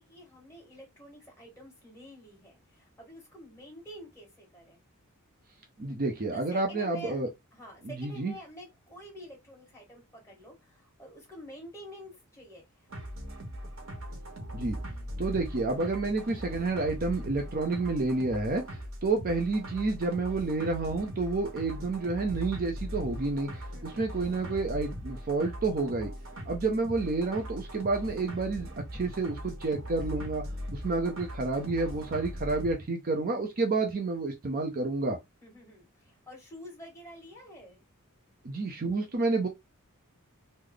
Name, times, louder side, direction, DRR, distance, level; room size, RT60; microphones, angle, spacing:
voice 1, 0.0-4.8 6.3-7.2 7.5-12.9 23.7-24.1 26.3-26.6 35.4-37.8, equal, 15° left, 1.8 m, -48 dB
voice 2, 5.8-7.3 7.8-8.3 14.5-14.8 15.2-18.6 19.0-26.1 26.5-30.4 30.7-35.2 38.4-39.5, right 3 dB, 40° right, 0.5 m, -29 dB
sound 1, 12.9-32.7, equal, 65° right, 0.9 m, -40 dB
3.2 x 2.0 x 3.7 m
head